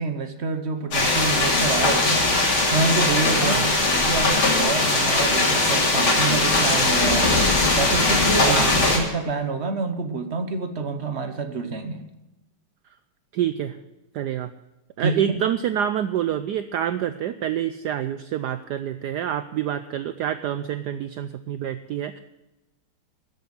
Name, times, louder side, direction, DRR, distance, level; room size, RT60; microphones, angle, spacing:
voice 1, 0.0-2.2 2.7-3.6 3.9-7.3 7.8-8.6 8.9-12.0 15.0-15.4, right 4 dB, 45° right, 8 dB, 0.9 m, -27 dB
sound 1, 0.9-9.0, left 2 dB, 75° left, 3.8 m, -20 dB
voice 2, 3.4-3.7 8.4-8.9 13.3-13.8 14.1-14.5 15.0-22.2, right 10 dB, 75° right, 12 dB, 0.9 m, -27 dB
13.0 x 8.0 x 8.0 m, 1.0 s
omnidirectional pair, 2.3 m